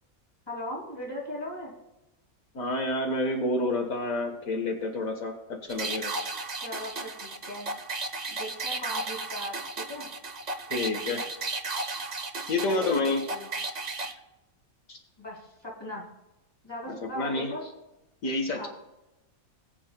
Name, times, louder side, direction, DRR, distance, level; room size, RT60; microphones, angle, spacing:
voice 1, 0.5-1.7 6.6-7.7 8.3-10.1 12.7-13.5 15.2-16.1 16.6-17.7 18.5-18.7, left 1 dB, 20° left, -4 dB, 3.1 m, -38 dB
voice 2, 2.5-6.1 10.7-11.2 12.5-13.2 14.9-15.0 16.9-17.5 18.2-18.7, left 2 dB, 75° left, 3 dB, 1.7 m, -29 dB
sound 1, 5.7-14.1, right 3 dB, 35° right, 0.8 m, -34 dB
20.0 x 8.5 x 2.2 m, 0.96 s
omnidirectional pair, 1.5 m